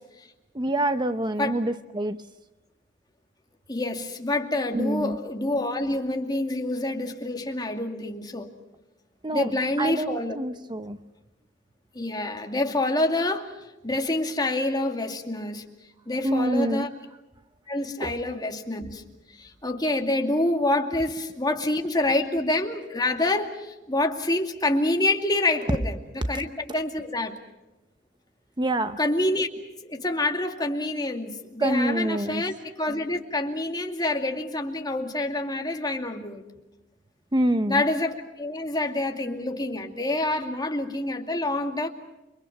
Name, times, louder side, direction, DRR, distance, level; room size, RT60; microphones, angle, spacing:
voice 1, 0.5-2.2 4.7-5.2 9.2-9.5 9.8-11.0 16.2-16.9 18.0-18.2 28.6-29.0 31.6-32.4 37.3-37.8, right 1 dB, 25° right, 10 dB, 0.8 m, -26 dB
voice 2, 3.7-8.5 9.3-10.4 11.9-13.5 13.8-15.6 16.1-16.9 17.7-19.0 19.3-27.3 29.0-29.5 29.8-36.4 37.7-41.9, left 2 dB, 20° left, 4 dB, 2.4 m, -27 dB
29.0 x 24.5 x 6.0 m, 0.99 s
head